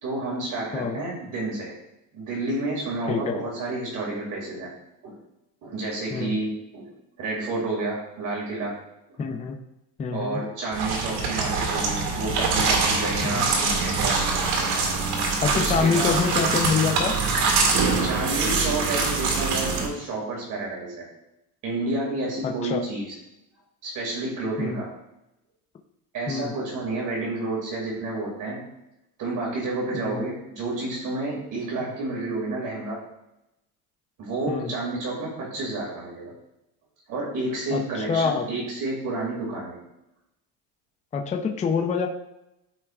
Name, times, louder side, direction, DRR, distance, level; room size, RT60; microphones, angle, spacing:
voice 1, 0.0-1.8 2.1-4.7 5.0-5.2 5.6-6.9 7.2-8.8 9.1-9.2 10.1-14.3 15.5-16.2 18.0-21.1 21.6-23.2 23.8-24.9 26.1-28.7 29.2-33.0 34.2-36.3 37.1-39.8, right 2 dB, 50° right, -3 dB, 2.3 m, -30 dB
voice 2, 3.1-3.4 6.1-6.4 9.2-9.5 10.0-10.4 13.2-13.5 15.4-17.2 22.4-22.8 24.6-24.8 26.3-26.5 29.9-30.2 34.5-34.7 37.7-38.5 41.1-42.1, left 5 dB, 15° left, 3 dB, 0.5 m, -26 dB
sound 1, 10.7-19.9, right 4 dB, 70° right, 1.8 m, -24 dB
13.0 x 4.5 x 2.4 m, 0.89 s
cardioid pair, 150°, 40 cm